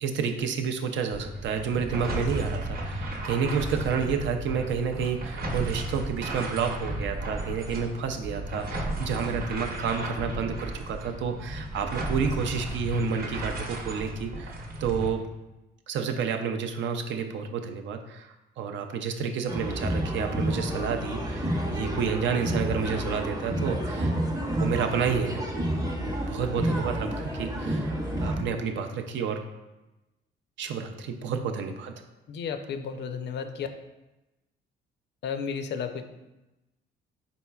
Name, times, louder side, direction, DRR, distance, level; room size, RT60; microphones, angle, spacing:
voice 1, 0.0-15.3 15.9-24.2 24.6-25.7 26.3-29.4 30.6-31.9, right 6 dB, 70° right, 5 dB, 0.5 m, -30 dB
sound 1, 1.1-15.1, right 1 dB, 50° right, 0.9 m, -34 dB
sound 2, 19.5-28.4, equal, 15° right, 0.7 m, -30 dB
voice 2, 32.3-33.7 35.2-36.1, left 6 dB, 60° left, 7 dB, 0.4 m, -33 dB
4.3 x 4.0 x 2.3 m, 1.0 s
cardioid pair, 90°, 20 cm